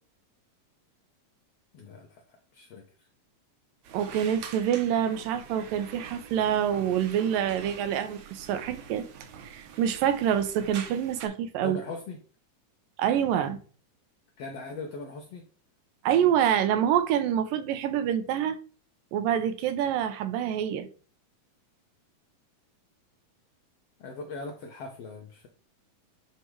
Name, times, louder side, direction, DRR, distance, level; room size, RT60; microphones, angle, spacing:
voice 1, 1.7-2.8 11.6-12.2 14.4-15.5 24.0-25.5, left 3 dB, 70° left, 1.5 m, -40 dB
sound 1, 3.8-11.3, right 7 dB, 70° right, 2.2 m, -45 dB
voice 2, 3.9-9.1 9.5-11.8 13.0-13.6 16.0-18.6 19.1-20.9, right 9 dB, 85° right, 2.4 m, -26 dB
9.9 x 3.5 x 4.7 m
omnidirectional pair, 4.0 m